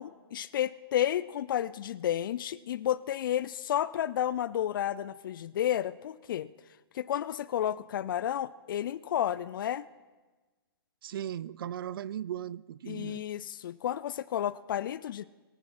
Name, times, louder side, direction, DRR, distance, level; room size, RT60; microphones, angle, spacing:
voice 1, 0.0-6.5 6.9-9.9 12.9-15.3, left 11 dB, 55° left, 17 dB, 0.4 m, -31 dB
voice 2, 11.0-13.2, right 10 dB, 60° right, 21 dB, 0.5 m, -37 dB
22.5 x 8.5 x 4.3 m, 1.3 s
hypercardioid pair, 135°, 13 cm